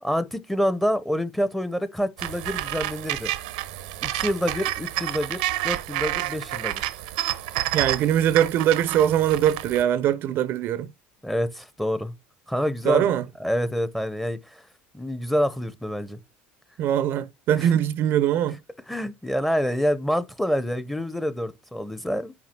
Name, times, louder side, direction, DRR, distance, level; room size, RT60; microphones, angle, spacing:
voice 1, 0.0-3.3 4.0-6.9 11.2-12.1 12.5-13.1 13.4-14.6 14.9-16.2 17.6-17.7 18.9-22.3, equal, 5° left, 0.8 m, -27 dB
sound 1, 2.2-9.8, right 15 dB, 85° right, 0.8 m, -29 dB
voice 2, 7.7-10.9 12.8-13.2 16.8-18.6, right 10 dB, 55° right, 0.6 m, -22 dB
5.9 x 4.8 x 5.9 m
supercardioid pair, 105°, 4 cm